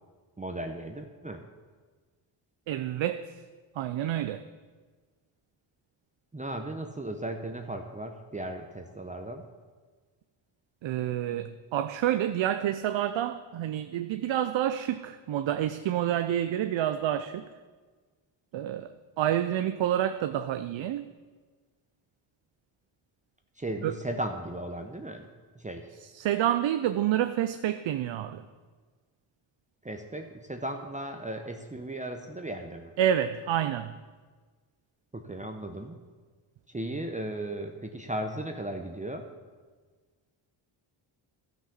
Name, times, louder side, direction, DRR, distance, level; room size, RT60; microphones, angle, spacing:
voice 1, 0.4-1.5 6.3-9.5 23.6-25.3 25.5-25.9 29.8-32.9 35.1-36.0 36.7-39.3, right 1 dB, 15° right, 4 dB, 0.8 m, -36 dB
voice 2, 2.7-3.3 3.8-4.5 10.8-17.5 18.5-21.1 23.8-23.9 26.1-28.4 33.0-33.9, right 11 dB, 65° right, 10 dB, 0.6 m, -28 dB
12.5 x 6.0 x 7.0 m, 1.4 s
cardioid pair, 75°, 49 cm